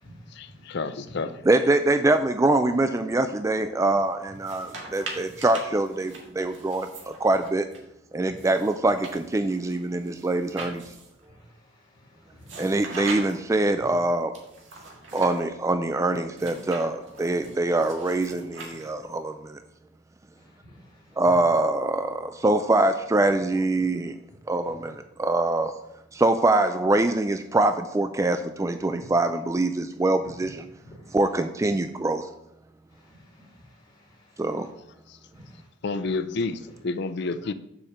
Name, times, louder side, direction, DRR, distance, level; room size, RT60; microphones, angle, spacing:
voice 1, 0.3-1.5 35.1-35.2 35.8-37.5, left 3 dB, 60° left, 12 dB, 0.6 m, -30 dB
voice 2, 1.5-7.7 8.1-10.8 12.6-14.3 15.1-19.6 21.2-24.1 24.5-25.7 26.1-30.7 31.1-32.3 34.4-34.7, right 2 dB, 15° right, 8 dB, 0.3 m, -24 dB
sound 1, 4.3-7.8 8.4-11.2 12.4-13.6 14.3-15.4 16.3-19.2, right 3 dB, 70° right, 2.0 m, -41 dB
voice 3, 20.6-21.0 31.0-31.2 32.9-34.4 35.3-35.7, equal, 20° left, -4 dB, 3.1 m, -53 dB
7.1 x 4.9 x 6.6 m, 0.82 s
head